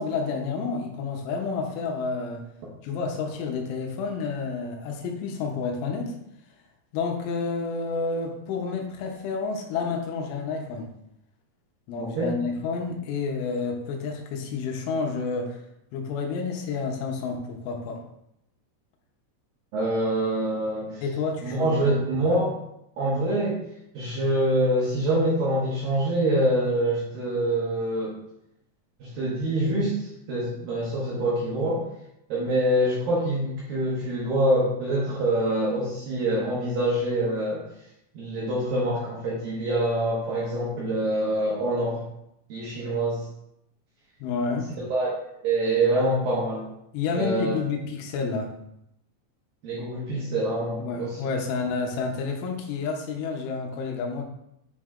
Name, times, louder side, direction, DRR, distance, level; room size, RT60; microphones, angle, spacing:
voice 1, 0.0-2.4 2.8-6.1 6.9-10.9 11.9-15.6 15.9-18.0 21.0-22.4 44.2-44.7 46.9-48.5 50.8-54.3, left 4 dB, 80° left, 2 dB, 3.1 m, -30 dB
voice 2, 12.0-12.3 19.7-21.0 21.4-22.5 23.0-23.6 23.9-28.2 29.0-31.9 32.3-37.6 38.1-42.0 42.5-43.2 44.8-45.1 45.4-46.6 47.1-47.6 49.6-51.3, right 1 dB, 75° right, -6 dB, 2.1 m, -25 dB
8.6 x 3.2 x 3.7 m, 0.79 s
omnidirectional pair, 5.8 m